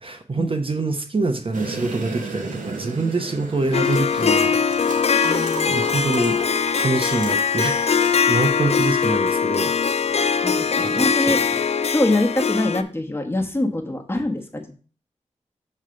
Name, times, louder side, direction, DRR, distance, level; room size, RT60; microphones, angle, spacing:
voice 1, 0.0-4.8 5.7-6.4 6.7-9.8 10.8-11.4, right 3 dB, 45° right, 0.9 m, -25 dB
sound 1, 1.5-8.5, right 4 dB, 85° right, 1.1 m, -34 dB
Harp, 3.7-12.8, left 6 dB, 55° left, 0.5 m, -21 dB
voice 2, 5.2-6.0 10.2-11.4 11.9-14.7, left 1 dB, 20° left, 1.3 m, -24 dB
7.3 x 3.2 x 5.1 m
cardioid pair, 50°, 13 cm